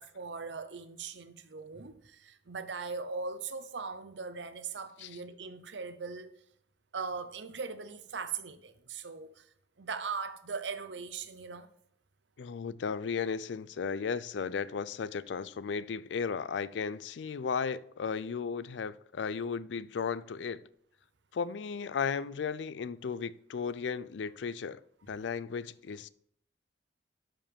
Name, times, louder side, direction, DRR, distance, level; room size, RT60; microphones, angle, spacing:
voice 1, 0.0-6.3 6.9-9.5 9.8-11.7, right 5 dB, 85° right, 0.8 m, -40 dB
voice 2, 12.4-20.6 21.3-24.8 25.1-26.1, left 6 dB, 90° left, 0.4 m, -35 dB
12.0 x 5.1 x 3.5 m
head